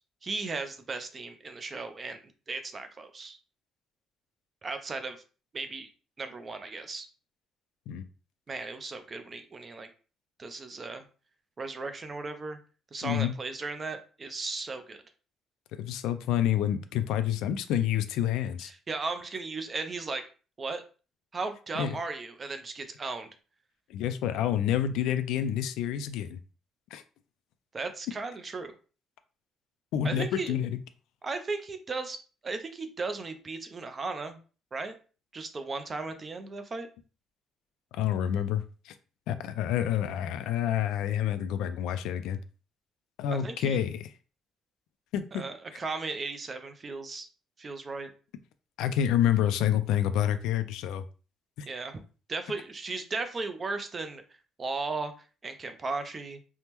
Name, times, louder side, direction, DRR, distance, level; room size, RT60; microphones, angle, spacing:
voice 1, 0.2-2.2 2.5-3.4 4.6-5.2 5.5-5.9 6.2-7.1 8.5-9.9 10.4-11.0 11.6-12.6 12.9-15.0 18.6-20.2 20.6-20.8 21.3-23.3 27.7-28.7 30.0-30.5 31.2-32.2 32.4-34.4 34.7-34.9 35.3-36.9 43.3-43.8 45.3-47.3 47.6-48.1 51.7-52.0 52.3-54.2 54.6-55.1 55.4-56.4, right 3 dB, 25° right, 8 dB, 0.4 m, -36 dB
voice 2, 13.0-13.4 15.7-18.7 21.8-21.9 23.9-26.4 26.9-27.0 29.9-30.8 37.9-38.9 39.3-42.4 43.2-44.1 45.1-45.4 48.8-51.0 51.6-51.7, left 10 dB, 90° left, 10 dB, 0.3 m, -28 dB
3.4 x 2.0 x 2.9 m, 0.36 s
cardioid pair, 150°, 0 cm